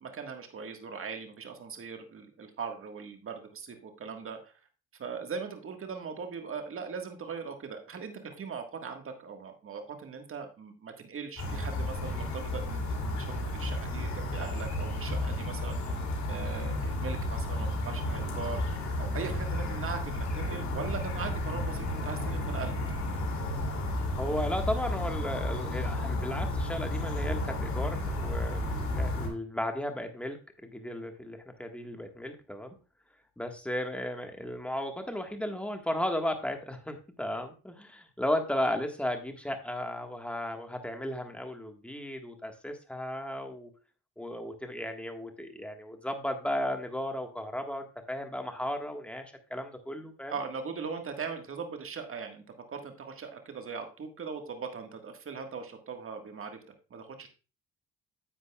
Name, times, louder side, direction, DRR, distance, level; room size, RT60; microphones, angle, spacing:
voice 1, 0.0-4.5 5.0-15.9 16.3-18.6 19.0-22.7 50.3-52.4 52.7-57.3, right 5 dB, 45° right, 5 dB, 1.6 m, -40 dB
sound 1, 11.4-29.3, left 1 dB, 65° left, 2.8 m, -32 dB
voice 2, 24.2-30.4 30.6-32.8 33.4-43.7 44.2-49.2 49.5-50.3, left 1 dB, 5° left, 5 dB, 1.5 m, -35 dB
10.0 x 7.9 x 2.3 m, 0.33 s
cardioid pair, 90°, 30 cm